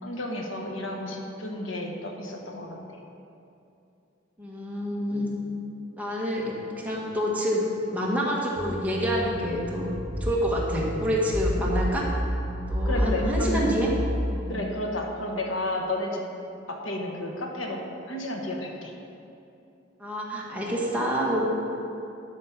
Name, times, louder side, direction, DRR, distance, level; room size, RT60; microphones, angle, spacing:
voice 1, 0.0-3.0 12.8-13.8 14.5-16.2 16.7-17.8 18.1-18.9, left 1 dB, 80° left, 1 dB, 1.3 m, -31 dB
voice 2, 4.4-5.3 6.0-9.9 10.2-12.1 12.7-13.9 14.3-14.7 20.0-21.5, equal, 10° right, -4 dB, 1.6 m, -27 dB
sound 1, 8.6-13.9, equal, 20° left, 1.1 m, -30 dB
11.5 x 6.5 x 5.9 m, 2.7 s
head